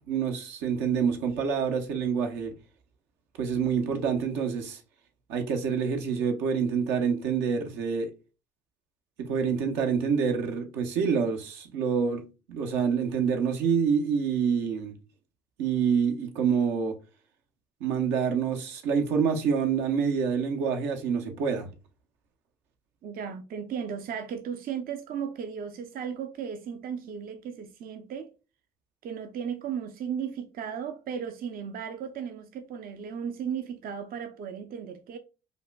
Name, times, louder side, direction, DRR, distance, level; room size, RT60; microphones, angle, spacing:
voice 1, 0.1-2.5 3.4-4.8 5.3-8.1 9.2-12.2 12.5-15.0 15.6-17.0 17.8-21.7, right 6 dB, 80° right, 0.8 m, -27 dB
voice 2, 23.0-28.3 29.0-35.2, right 7 dB, 55° right, 0.5 m, -35 dB
5.1 x 2.2 x 2.2 m
supercardioid pair, 65°, 18 cm